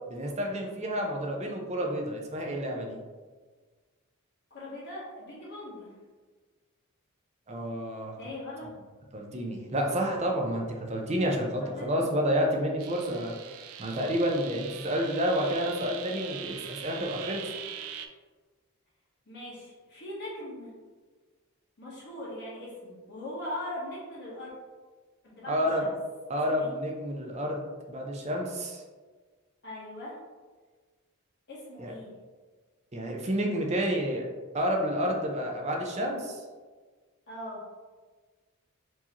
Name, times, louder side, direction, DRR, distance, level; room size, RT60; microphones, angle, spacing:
voice 1, 0.1-3.0 7.5-8.1 9.1-13.3 13.8-17.4 25.5-25.9 26.3-28.8 31.8-31.9 32.9-34.3 34.5-36.4, equal, 30° right, 0 dB, 0.6 m, -29 dB
voice 2, 4.5-5.9 8.2-8.7 11.6-12.0 19.3-20.7 21.8-24.5 25.2-25.9 26.5-26.7 29.6-30.1 31.5-32.1 37.3-37.6, left 1 dB, 50° left, -7 dB, 1.1 m, -40 dB
sound 1, 12.8-18.1, right 9 dB, 75° right, 0.4 m, -42 dB
4.5 x 2.8 x 2.9 m, 1.4 s
head